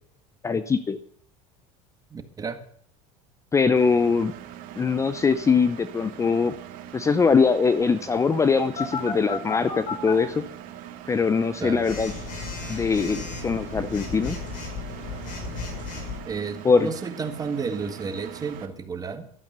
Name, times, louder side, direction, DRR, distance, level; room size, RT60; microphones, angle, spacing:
voice 1, 0.4-1.0 3.5-4.3 4.8-6.5 6.9-10.4 11.1-12.1 12.7-14.4 16.6-16.9, left 5 dB, 20° left, 13 dB, 0.7 m, -22 dB
voice 2, 2.1-2.6 11.6-11.8 16.3-19.3, right 5 dB, 20° right, 8 dB, 1.7 m, -32 dB
Engine, 3.8-18.7, right 11 dB, 55° right, 2.1 m, -42 dB
Telephone, 8.8-10.1 11.8-16.2, left 4 dB, 55° left, 5.8 m, -34 dB
12.5 x 12.0 x 6.8 m, 0.62 s
supercardioid pair, 120°, 17 cm